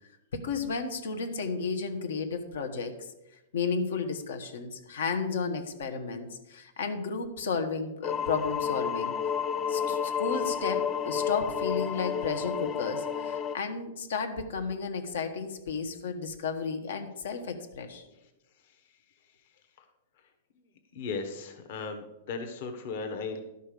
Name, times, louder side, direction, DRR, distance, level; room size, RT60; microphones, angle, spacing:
voice 1, 0.3-3.1 3.5-9.1 9.7-18.1, left 5 dB, 85° left, 6 dB, 1.5 m, -33 dB
sound 1, 8.0-13.6, left 7 dB, 20° left, 0.3 m, -31 dB
voice 2, 20.9-23.4, left 4 dB, 50° left, 5 dB, 1.2 m, -36 dB
12.0 x 5.6 x 6.8 m, 0.93 s
supercardioid pair, 170°, 0 cm